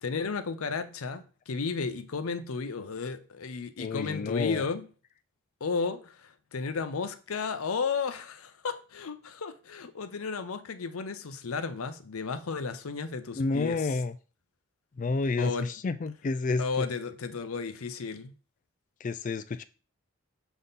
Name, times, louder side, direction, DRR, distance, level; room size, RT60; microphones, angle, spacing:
voice 1, 0.0-4.9 5.6-14.0 15.4-15.7 16.6-18.3, left 5 dB, 80° left, 0.6 m, -33 dB
voice 2, 3.8-4.6 13.4-14.2 15.0-16.9 19.0-19.6, left 3 dB, 35° left, 0.3 m, -30 dB
6.9 x 3.7 x 4.0 m
head